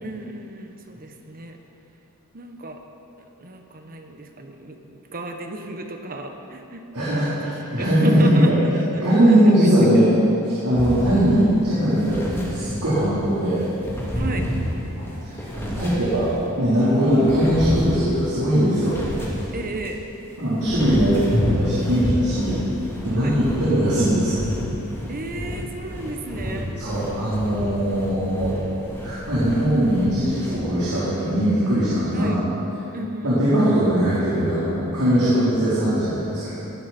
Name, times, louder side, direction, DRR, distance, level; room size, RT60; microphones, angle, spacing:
voice 1, 0.0-1.6 2.3-2.8 3.4-6.8 7.1-9.7 14.1-14.5 19.5-20.0 23.1-23.4 25.1-26.7 32.1-32.4 32.9-33.3, right 2 dB, 40° right, 4 dB, 1.1 m, -33 dB
voice 2, 6.9-8.5 9.0-10.1 10.4-13.7 15.0-19.0 20.4-22.6 23.0-24.4 26.8-28.5 29.0-32.4 33.2-36.5, equal, 80° right, -11 dB, 4.0 m, -20 dB
sound 1, 10.8-13.1 13.6-16.5 17.0-20.0 20.4-30.5, equal, 10° left, 2.9 m, -30 dB
19.0 x 11.5 x 4.4 m, 2.9 s
head